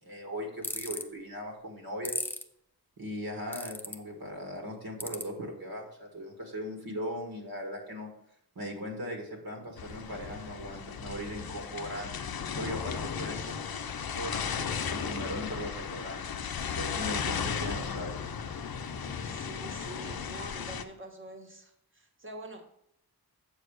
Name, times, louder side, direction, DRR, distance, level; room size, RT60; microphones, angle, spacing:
voice 1, 0.0-2.1 3.0-8.1 8.6-12.2 12.6-13.6 14.1-16.2 16.7-18.1, equal, 65° right, 1 dB, 2.0 m, -39 dB
sound 1, 0.6-1.0 2.0-2.4 3.5-3.9 5.0-5.2, left 1 dB, 5° left, 0.6 m, -34 dB
sound 2, 9.8-20.8, left 7 dB, 70° left, 0.7 m, -35 dB
voice 2, 19.2-22.7, right 1 dB, 30° right, 3 dB, 1.5 m, -46 dB
7.3 x 4.6 x 6.4 m, 0.74 s
wide cardioid pair, 75°, 38 cm